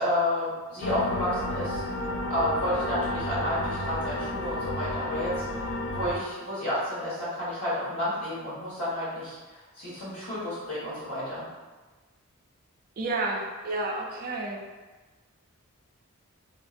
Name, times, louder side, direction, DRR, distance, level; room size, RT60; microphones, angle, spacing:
voice 1, 0.0-1.8 2.3-5.5 5.9-11.5, left 1 dB, 80° left, -9 dB, 1.5 m, -30 dB
sound 1, 0.8-6.2, left 1 dB, 60° left, 0.4 m, -32 dB
voice 2, 13.0-14.6, right 2 dB, 40° right, 0 dB, 0.4 m, -30 dB
2.9 x 2.6 x 2.4 m, 1.3 s
head